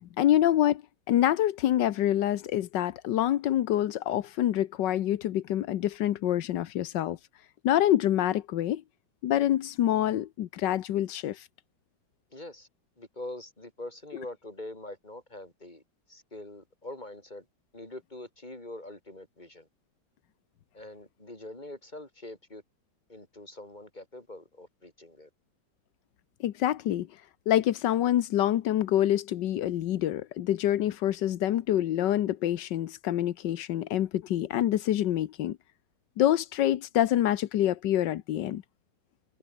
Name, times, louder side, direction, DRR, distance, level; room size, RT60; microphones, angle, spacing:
voice 1, 0.2-0.8 1.1-7.2 7.6-8.8 9.2-11.5 26.4-27.1 27.5-35.6 36.2-38.6, left 12 dB, 90° left, 1.5 m, -26 dB
voice 2, 12.3-12.7 13.0-15.8 16.1-17.5 17.7-19.7 20.7-22.6 23.1-25.3, left 1 dB, 25° left, 5.4 m, -44 dB
omnidirectional pair, 1.9 m